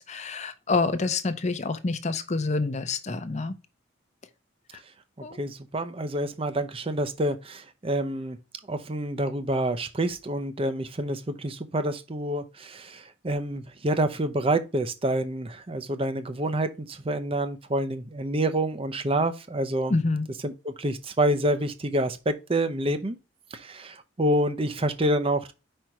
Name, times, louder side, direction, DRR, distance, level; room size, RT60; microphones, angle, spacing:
voice 1, 0.0-3.5 4.7-4.8 5.2-5.4 19.9-20.3, left 3 dB, 35° left, 0.6 m, -27 dB
voice 2, 5.2-8.4 8.7-19.9 20.4-23.2 23.5-25.5, right 1 dB, 30° right, 0.6 m, -27 dB
5.0 x 4.4 x 4.6 m
head